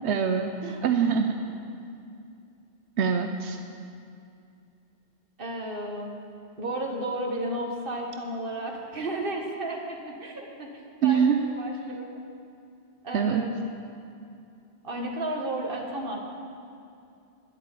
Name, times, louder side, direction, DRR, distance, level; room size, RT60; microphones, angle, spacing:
voice 1, 0.0-0.5 0.8-1.4 3.0-3.6 11.0-11.5 13.1-13.4, right 7 dB, 90° right, 6 dB, 1.0 m, -23 dB
voice 2, 5.4-6.2 6.6-12.1 13.0-13.8 14.8-16.2, right 1 dB, 55° right, 1 dB, 1.9 m, -33 dB
12.0 x 11.5 x 8.5 m, 2.6 s
omnidirectional pair, 1.1 m